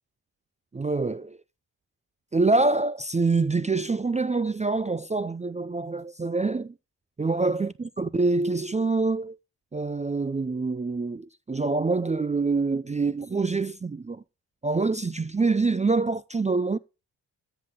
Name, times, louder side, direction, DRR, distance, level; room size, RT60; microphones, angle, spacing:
voice 1, 0.7-1.4 2.3-6.7 7.2-9.4 9.7-14.2 14.6-16.8, right 3 dB, 15° right, 0.4 m, -25 dB
13.5 x 5.9 x 3.7 m
supercardioid pair, 45°, 42 cm